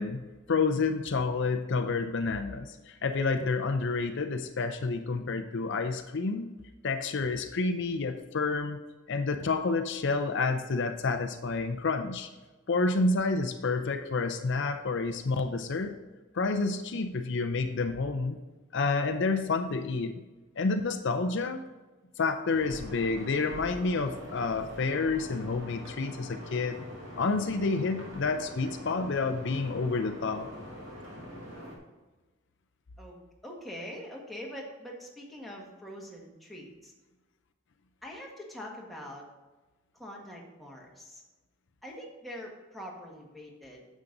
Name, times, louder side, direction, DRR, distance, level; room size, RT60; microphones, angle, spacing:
voice 1, 0.0-6.5 6.8-8.8 9.1-12.3 12.7-15.9 16.3-18.4 18.7-20.2 20.6-21.6 22.2-26.8 27.2-30.5, left 3 dB, 60° left, 7 dB, 0.6 m, -29 dB
sound 1, 22.5-31.8, equal, 65° right, 2.7 m, -44 dB
voice 2, 33.0-36.9 38.0-39.3 39.9-41.2 41.8-43.9, equal, ahead, -3 dB, 1.6 m, -44 dB
9.8 x 7.3 x 3.9 m, 1.2 s
head